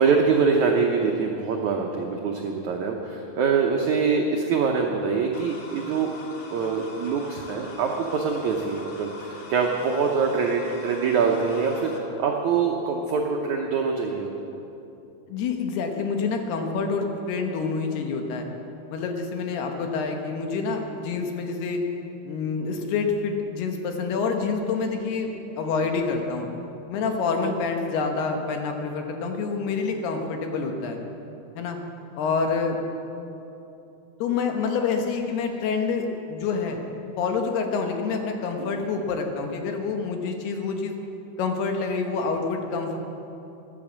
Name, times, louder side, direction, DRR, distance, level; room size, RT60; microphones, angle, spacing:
voice 1, 0.0-6.1 6.5-14.3 38.6-38.9, right 5 dB, 90° right, 1 dB, 1.6 m, -24 dB
sound 1, 5.3-12.0, left 3 dB, 60° left, 1.6 m, -43 dB
voice 2, 15.3-18.5 18.9-21.8 22.2-25.3 25.6-26.5 26.9-31.0 31.6-31.8 32.2-32.8 34.2-36.8 37.2-40.9 41.4-43.0, left 4 dB, 75° left, 3 dB, 3.2 m, -27 dB
14.0 x 11.5 x 7.3 m, 2.9 s
omnidirectional pair, 4.7 m